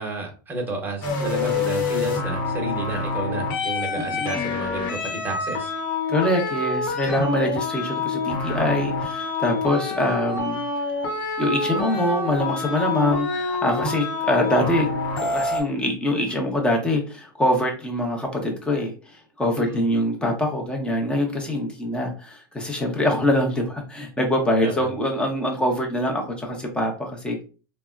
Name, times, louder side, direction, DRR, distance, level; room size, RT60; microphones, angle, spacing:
voice 1, 0.0-5.7 19.6-19.8 24.6-24.9, right 2 dB, 15° right, 0 dB, 1.0 m, -31 dB
sound 1, 1.0-15.6, left 3 dB, 70° left, 1.0 m, -27 dB
voice 2, 3.9-4.4 6.1-10.6 11.4-14.9 15.2-27.4, left 1 dB, 10° left, 1 dB, 0.8 m, -24 dB
3.4 x 2.2 x 2.4 m, 0.35 s
hypercardioid pair, 115°, 12 cm